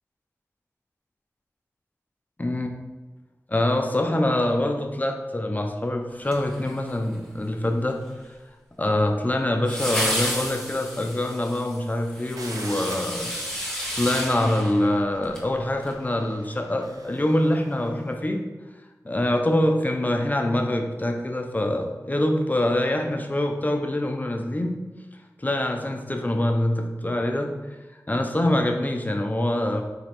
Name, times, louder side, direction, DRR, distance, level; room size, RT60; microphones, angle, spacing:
voice 1, 2.4-2.7 3.5-8.0 8.8-13.3 14.0-18.4 19.0-24.8 25.4-27.5 28.1-29.8, left 1 dB, 25° left, 3 dB, 0.5 m, -24 dB
sound 1, 6.2-7.2 9.7-15.5 15.8-15.9, equal, 10° left, 1.2 m, -31 dB
sound 2, 12.4-18.0, right 2 dB, 80° right, 0.4 m, -45 dB
4.0 x 3.0 x 2.9 m, 1.2 s
cardioid pair, 40°, 6 cm